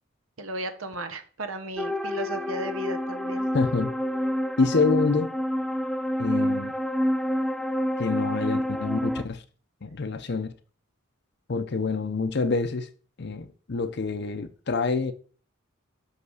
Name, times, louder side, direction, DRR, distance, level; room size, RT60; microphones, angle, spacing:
voice 1, 0.4-3.5, right 1 dB, 80° right, 1.1 m, -35 dB
sound 1, 1.8-9.2, equal, ahead, 0.3 m, -28 dB
voice 2, 3.5-3.9 4.6-5.3 6.2-6.7 8.0-9.4 9.8-10.5 11.5-12.9 13.2-15.1, left 4 dB, 55° left, 0.6 m, -26 dB
5.8 x 5.4 x 6.3 m
head